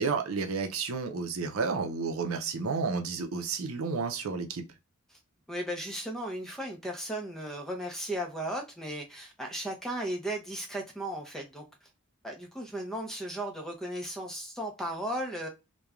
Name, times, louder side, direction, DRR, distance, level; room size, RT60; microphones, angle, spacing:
voice 1, 0.0-4.6, right 4 dB, 85° right, 0.5 m, -31 dB
voice 2, 5.5-11.9 12.2-15.5, right 1 dB, ahead, 0.5 m, -36 dB
3.0 x 2.2 x 2.2 m
head